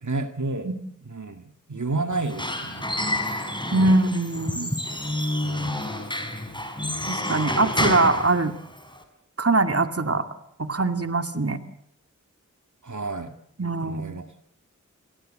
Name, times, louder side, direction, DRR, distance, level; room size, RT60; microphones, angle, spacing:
voice 1, 0.0-0.7 1.1-1.4 1.7-3.3 3.8-4.0 5.4-5.9 12.8-13.4 13.8-14.4, right 3 dB, 70° right, 7 dB, 2.1 m, -31 dB
Squeak / Wood, 2.1-9.0, left 1 dB, 15° left, 5.1 m, -29 dB
voice 2, 3.7-4.7 7.1-8.5 9.4-10.2 10.6-11.6 13.6-14.2, right 2 dB, 50° right, 8 dB, 2.3 m, -22 dB
29.0 x 21.5 x 7.7 m, 0.72 s
wide cardioid pair, 55°, 31 cm